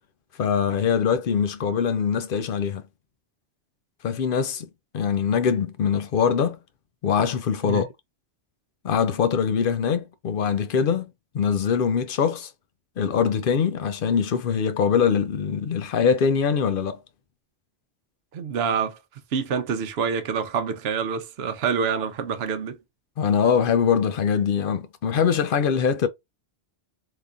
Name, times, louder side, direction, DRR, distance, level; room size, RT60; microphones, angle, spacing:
voice 1, 0.4-2.8 4.0-4.7 4.9-6.6 7.0-7.9 8.8-12.5 13.0-17.0 23.2-26.1, left 7 dB, 60° left, 0.6 m, -23 dB
voice 2, 18.3-19.0 19.3-22.8, right 6 dB, 65° right, 0.9 m, -26 dB
3.5 x 2.9 x 2.5 m
omnidirectional pair, 1.2 m